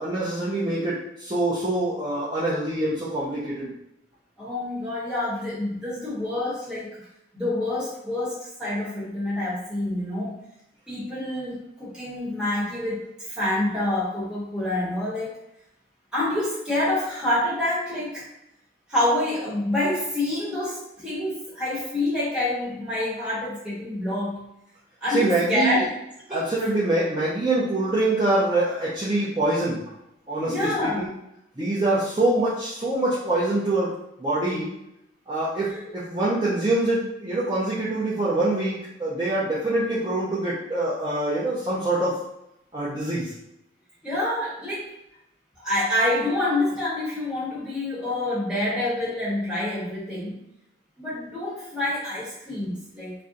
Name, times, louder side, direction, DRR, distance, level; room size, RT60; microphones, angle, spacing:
voice 1, 0.0-3.7 25.1-25.8 26.3-29.8 30.3-31.1 31.6-33.9 34.2-34.7 35.3-42.2 42.7-43.3, right 2 dB, 25° right, -8 dB, 0.5 m, -25 dB
voice 2, 4.4-7.0 7.3-10.4 10.9-15.4 16.1-18.2 18.9-24.4 25.0-25.9 26.3-26.4 30.4-31.1 35.5-35.9 44.0-44.9 45.6-50.4 51.0-53.1, left 1 dB, 5° right, -8 dB, 1.1 m, -27 dB
2.5 x 2.2 x 3.8 m, 0.83 s
head